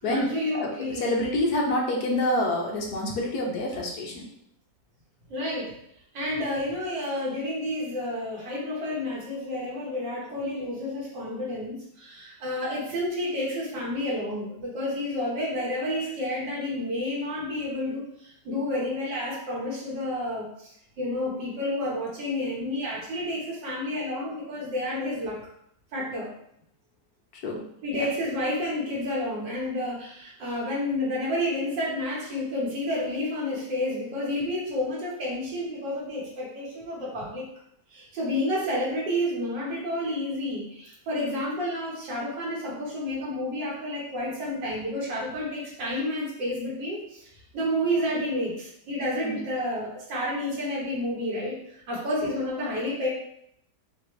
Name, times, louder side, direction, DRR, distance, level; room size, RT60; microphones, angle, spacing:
voice 1, 0.0-1.1 5.3-5.7 6.1-20.5 21.0-25.4 25.9-26.3 27.8-37.5 37.9-47.3 47.5-51.6 51.9-53.1, left 1 dB, 90° right, -4 dB, 2.1 m, -30 dB
voice 2, 0.5-4.2 27.4-27.6 27.9-28.1 49.2-49.4, left 1 dB, 65° left, 0 dB, 1.3 m, -27 dB
5.8 x 2.5 x 3.2 m, 0.72 s
omnidirectional pair, 1.9 m